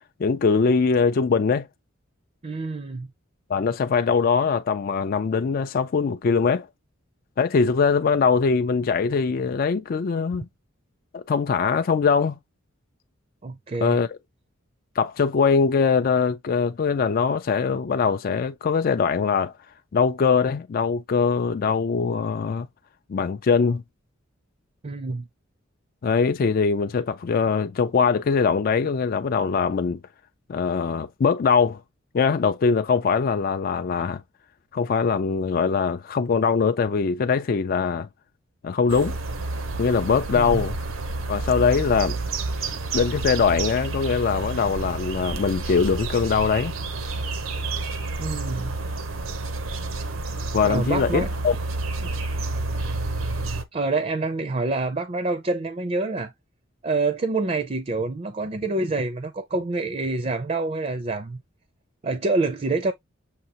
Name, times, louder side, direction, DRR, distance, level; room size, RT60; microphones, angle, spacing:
voice 1, 0.2-1.7 3.5-6.7 7.4-10.5 11.1-12.4 13.8-14.1 15.0-19.5 19.9-22.7 23.1-23.8 26.0-30.0 30.5-31.8 32.1-34.2 34.7-38.1 38.6-39.2 39.8-40.8 41.3-42.2 42.9-46.7 50.5-51.6, left 5 dB, 45° left, 0.4 m, -22 dB
voice 2, 2.4-3.1 13.4-14.0 24.8-25.2 40.3-40.6 48.2-48.8 50.6-51.3 52.0-52.1 53.7-56.3 56.8-61.4 62.0-62.9, right 3 dB, 35° right, 0.5 m, -27 dB
sound 1, 38.9-53.6, right 3 dB, 80° right, 0.8 m, -29 dB
6.6 x 2.8 x 2.8 m
head